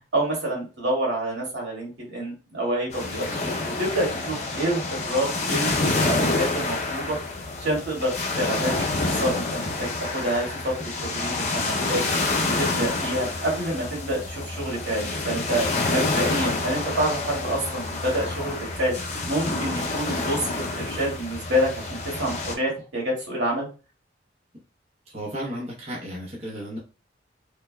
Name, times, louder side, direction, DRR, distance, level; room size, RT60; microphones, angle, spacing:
voice 1, 0.0-7.2 7.6-18.9 19.3-20.5 20.7-23.7, right 1 dB, 80° right, -3 dB, 1.9 m, -28 dB
sound 1, 2.9-22.5, left 2 dB, 35° left, 0.6 m, -28 dB
voice 2, 25.1-26.8, equal, 35° right, -4 dB, 0.9 m, -33 dB
3.7 x 3.2 x 2.3 m, 0.33 s
head